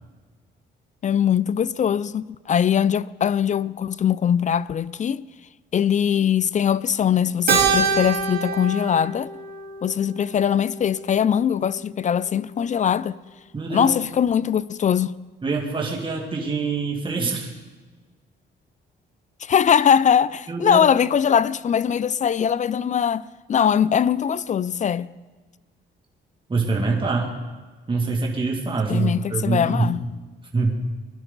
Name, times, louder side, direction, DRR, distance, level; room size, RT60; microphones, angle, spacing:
voice 1, 1.0-5.2 5.7-9.3 9.8-13.2 13.7-15.2 19.4-23.2 23.5-25.1 28.9-30.0, left 8 dB, 40° left, 0.4 m, -21 dB
Keyboard (musical), 7.5-12.1, right 5 dB, 45° right, 3.4 m, -26 dB
voice 2, 13.5-13.9 15.4-17.5 20.5-20.9 26.5-27.3 27.9-30.0 30.5-30.8, right 3 dB, 25° right, 2.3 m, -24 dB
20.5 x 12.0 x 4.0 m
cardioid pair, 90°, 20 cm